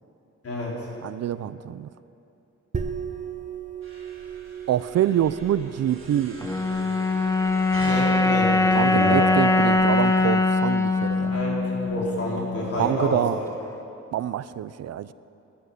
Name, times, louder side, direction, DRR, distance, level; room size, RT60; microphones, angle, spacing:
voice 1, 0.4-0.8 7.8-9.4 11.2-13.4, left 1 dB, 50° left, -3 dB, 3.9 m, -29 dB
voice 2, 1.0-1.9 4.7-6.5 8.7-11.4 12.8-13.4 14.1-15.1, right 11 dB, 60° right, 16 dB, 0.5 m, -26 dB
sound 1, 2.7-12.1, right 7 dB, 25° right, 0.9 m, -39 dB
sound 2, 3.8-9.6, right 2 dB, 45° right, 3.6 m, -43 dB
sound 3, 6.4-12.8, left 3 dB, 10° left, 0.7 m, -22 dB
12.5 x 11.5 x 9.5 m, 2.7 s
wide cardioid pair, 165°, 29 cm